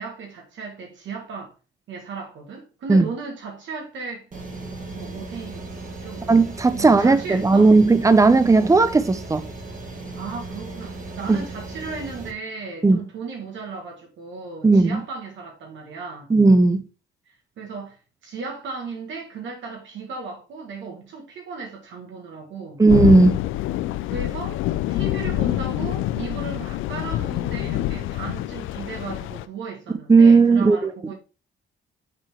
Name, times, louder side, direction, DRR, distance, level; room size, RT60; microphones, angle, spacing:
voice 1, 0.0-1.5 1.9-4.3 4.9-5.7 6.0-6.3 6.7-7.7 10.1-16.3 17.3-22.8 24.1-24.6 24.9-31.1, right 4 dB, 70° right, 1.7 m, -36 dB
sound 1, 4.3-12.3, right 2 dB, 40° right, 1.8 m, -36 dB
voice 2, 6.3-9.5 11.3-11.4 12.8-13.0 14.6-15.0 16.3-16.8 22.8-23.4 30.1-30.9, right 3 dB, 15° right, 0.7 m, -15 dB
sound 2, 22.9-29.4, left 15 dB, 85° left, 0.4 m, -26 dB
6.7 x 3.7 x 4.4 m
cardioid pair, 90°, 20 cm